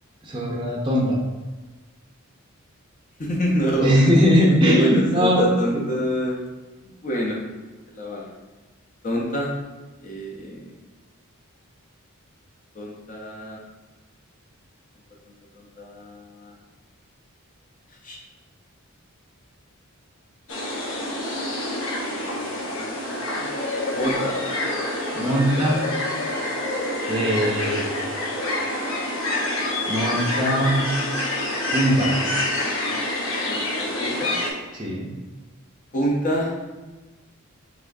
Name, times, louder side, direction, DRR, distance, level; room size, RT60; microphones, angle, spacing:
voice 1, 0.2-1.2 3.8-5.4 5.7-5.8 25.1-25.8 27.1-27.8 29.9-30.8 31.7-32.1 34.7-35.1, equal, 20° right, -3 dB, 0.6 m, -20 dB
voice 2, 3.2-4.0 4.6-6.4 7.0-7.4 7.9-8.3 9.0-9.5 10.0-10.7 12.7-13.6 15.3-16.5 18.0-18.2 22.1-23.5 23.9-24.3 33.5-34.3 35.9-36.6, equal, 35° left, -2 dB, 0.6 m, -27 dB
sound 1, 20.5-34.5, left 1 dB, 65° left, 0.9 m, -27 dB
5.8 x 3.0 x 2.6 m, 1.2 s
head